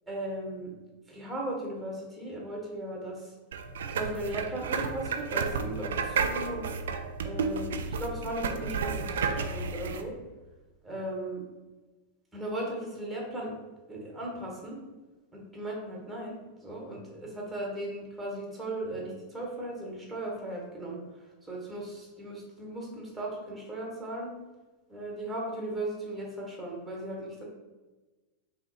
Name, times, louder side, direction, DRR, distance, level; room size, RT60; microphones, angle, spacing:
voice 1, 0.1-0.7 1.1-3.3 3.9-6.6 7.2-10.1 10.8-11.4 12.3-13.5 13.9-14.8 15.3-21.0 21.5-24.3 24.9-27.4, right 1 dB, 5° right, -3 dB, 1.2 m, -37 dB
sound 1, 3.5-10.0, right 5 dB, 60° right, 0.3 m, -32 dB
5.5 x 2.1 x 3.0 m, 1.2 s
figure-of-eight pair, 90°, 0 cm